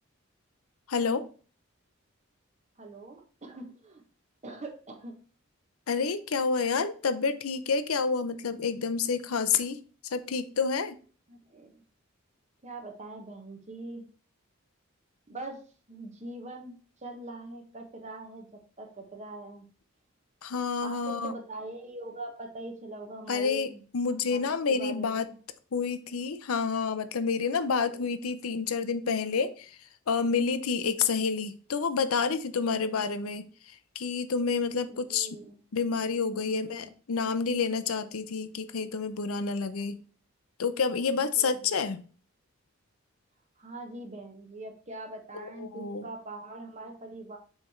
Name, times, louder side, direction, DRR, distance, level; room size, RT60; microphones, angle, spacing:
voice 1, 0.9-1.3 5.9-11.0 20.4-21.3 23.3-25.3 25.7-29.8 30.1-33.5 34.0-35.3 35.7-40.0 40.6-42.0 45.3-46.1, left 5 dB, 85° left, 12 dB, 0.6 m, -29 dB
voice 2, 2.8-4.0 4.4-5.2 11.3-11.8 12.6-14.1 15.3-15.6 15.9-18.5 18.8-19.7 20.8-23.8 24.3-25.4 27.8-28.2 32.6-33.0 34.9-35.6 36.3-36.9 41.1-41.8 43.6-47.4, right 2 dB, 35° right, 3 dB, 1.3 m, -43 dB
7.0 x 3.4 x 4.4 m, 0.40 s
head